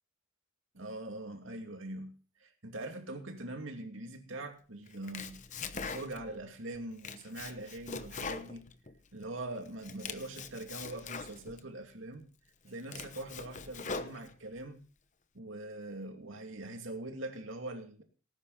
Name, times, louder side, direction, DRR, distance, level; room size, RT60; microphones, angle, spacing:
voice 1, 0.7-2.1 2.4-5.4 5.7-8.6 9.1-12.3 12.6-14.8 15.3-18.0, right 2 dB, 75° right, 4 dB, 2.6 m, -42 dB
Domestic sounds home sounds, 4.9-6.4 6.7-9.3 9.6-11.6 12.2-12.3 12.7-14.6, left 5 dB, 40° left, 0.9 m, -42 dB
18.5 x 9.7 x 4.1 m, 0.37 s
head